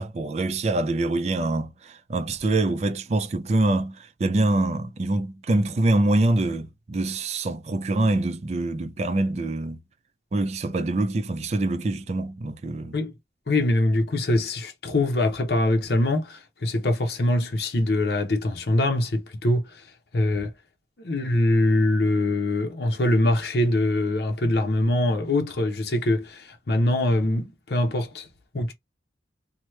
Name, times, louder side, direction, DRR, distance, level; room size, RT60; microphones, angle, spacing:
voice 1, 0.0-9.8 10.3-12.9, right 2 dB, 35° right, 0.4 m, -25 dB
voice 2, 13.5-19.8 20.1-20.5 21.0-28.3 28.5-28.7, left 1 dB, 60° left, 0.8 m, -23 dB
2.9 x 2.2 x 3.1 m
head